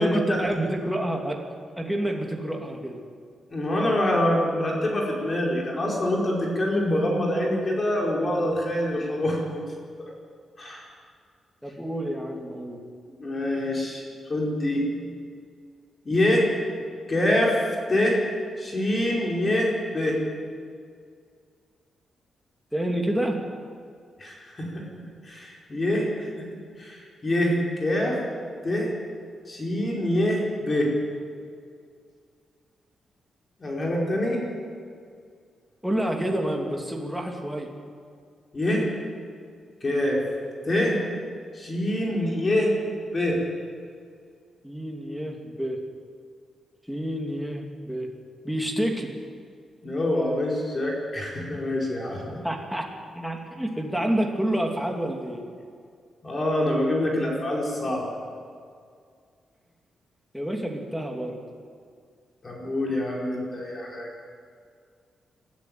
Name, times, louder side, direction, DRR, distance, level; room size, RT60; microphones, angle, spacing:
voice 1, 0.0-1.4 1.8-3.0 11.6-12.8 22.7-23.4 35.8-37.7 44.6-45.8 46.9-48.1 48.4-49.1 52.3-52.9 53.1-55.4 60.3-61.4, right 1 dB, ahead, 1 dB, 2.6 m, -28 dB
voice 2, 3.5-9.6 10.6-10.8 13.2-14.0 14.3-15.1 16.0-16.5 17.1-18.2 18.6-20.2 24.2-24.8 25.2-26.3 26.8-28.2 28.6-28.9 29.5-30.9 33.6-34.4 38.5-38.8 39.8-40.2 40.6-41.0 41.5-42.7 43.1-43.4 49.8-52.2 56.2-58.1 62.4-64.1, left 1 dB, 30° left, -2 dB, 4.8 m, -25 dB
22.5 x 13.5 x 9.4 m, 2.2 s
cardioid pair, 130°, 0 cm